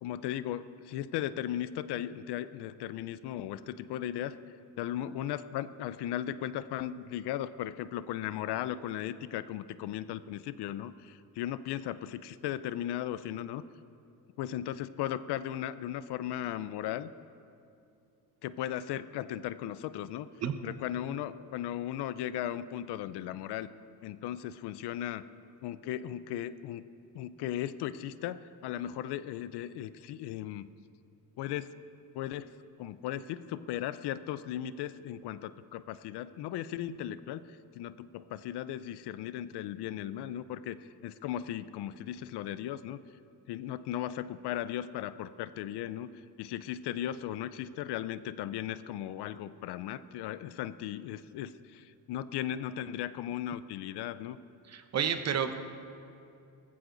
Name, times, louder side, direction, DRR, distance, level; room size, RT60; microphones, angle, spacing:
voice 1, 0.0-4.4 4.8-13.6 14.4-17.1 18.4-20.3 20.6-23.7 24.0-25.3 25.6-26.8 27.1-30.7 31.4-31.7 32.1-32.5 32.8-37.4 37.7-43.0 43.5-46.1 46.4-54.4, left 11 dB, 85° left, 15 dB, 0.6 m, -37 dB
voice 2, 54.7-55.6, right 7 dB, 40° right, 8 dB, 0.9 m, -30 dB
19.5 x 15.0 x 3.9 m, 2.6 s
cardioid pair, 140°, 39 cm